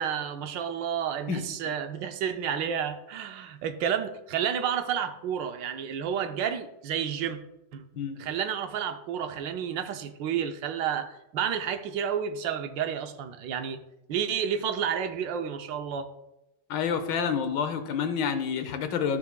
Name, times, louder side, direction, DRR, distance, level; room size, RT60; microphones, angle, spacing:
voice 1, 0.0-7.4 7.7-7.9 8.2-13.8 14.1-16.1, right 8 dB, 85° right, 8 dB, 1.4 m, -30 dB
voice 2, 16.7-19.2, left 7 dB, 80° left, 9 dB, 1.5 m, -28 dB
14.0 x 5.8 x 2.2 m, 0.92 s
omnidirectional pair, 2.0 m